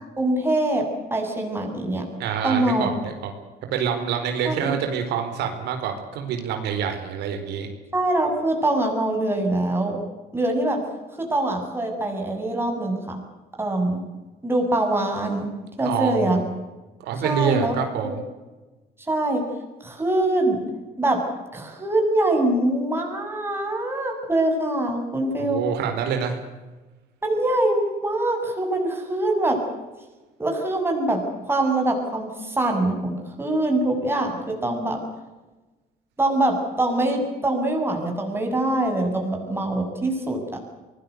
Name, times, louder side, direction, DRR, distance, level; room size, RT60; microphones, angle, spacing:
voice 1, 0.2-2.1 2.4-2.9 4.4-4.7 7.9-10.0 10.3-10.8 11.2-13.2 13.6-14.0 14.4-15.5 15.8-16.4 17.2-18.1 19.1-19.4 19.8-20.6 21.0-21.2 21.5-25.6 27.2-29.6 30.4-35.0 36.2-40.6, right 1 dB, 15° right, 2 dB, 7.6 m, -24 dB
voice 2, 2.2-3.3 3.6-7.7 15.8-16.4 17.0-18.2 25.4-26.4, right 7 dB, 80° right, 5 dB, 4.8 m, -26 dB
25.0 x 20.0 x 8.2 m, 1.2 s
cardioid pair, 110°, 17 cm